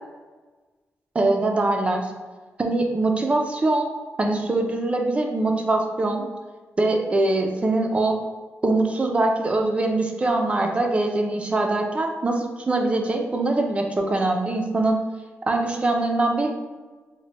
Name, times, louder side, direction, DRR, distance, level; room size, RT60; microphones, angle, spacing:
voice 1, 1.1-2.1 2.6-3.9 4.2-6.3 6.8-8.2 8.6-15.0 15.5-16.5, right 2 dB, 25° right, 2 dB, 0.4 m, -23 dB
3.2 x 2.1 x 3.9 m, 1.3 s
wide cardioid pair, 150°, 5 cm